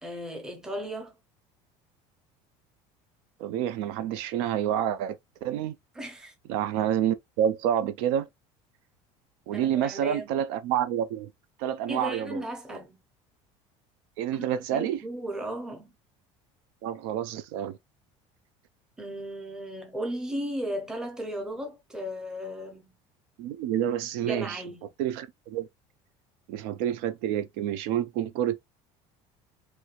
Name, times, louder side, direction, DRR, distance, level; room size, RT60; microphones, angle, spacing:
voice 1, 0.0-1.2 6.0-6.3 9.5-10.3 11.9-13.0 14.3-15.9 19.0-22.9 24.2-24.8, equal, 5° right, 0.6 m, -36 dB
voice 2, 3.4-5.8 6.5-8.3 9.5-11.3 11.6-12.4 12.7-12.8 14.2-15.0 16.8-17.8 23.4-24.6 25.0-25.7 26.5-28.6, right 10 dB, 70° right, 0.4 m, -28 dB
3.1 x 3.0 x 2.4 m
cardioid pair, 180°, 13 cm